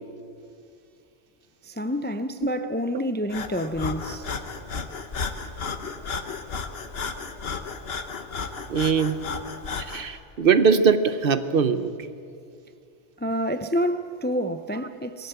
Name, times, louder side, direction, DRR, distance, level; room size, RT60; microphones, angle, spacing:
voice 1, 1.6-4.4 13.2-15.3, equal, 15° left, 0.5 m, -28 dB
Breathing, 3.3-10.1, left 5 dB, 60° left, 1.3 m, -33 dB
voice 2, 8.7-9.2 9.8-11.9, right 6 dB, 55° right, 1.0 m, -21 dB
20.5 x 16.5 x 8.0 m
omnidirectional pair, 1.1 m